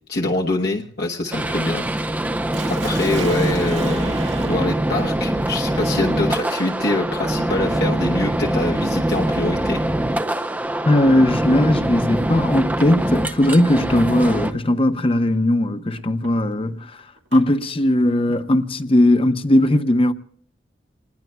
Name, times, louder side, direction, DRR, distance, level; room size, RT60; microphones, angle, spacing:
voice 1, 0.1-1.8 2.7-4.1 4.4-9.8, left 2 dB, 60° left, 1.1 m, -24 dB
sound 1, 1.3-14.5, right 1 dB, 10° right, 0.5 m, -23 dB
Sink (filling or washing), 2.5-12.5 13.6-13.9 14.4-14.5 16.0-17.5, right 5 dB, 80° right, 2.0 m, -41 dB
sound 2, 3.7-4.9 5.3-8.9, right 2 dB, 30° right, 1.0 m, -38 dB
voice 2, 10.9-17.0 17.3-20.1, left 1 dB, 30° left, 0.7 m, -18 dB
28.5 x 20.0 x 2.3 m
head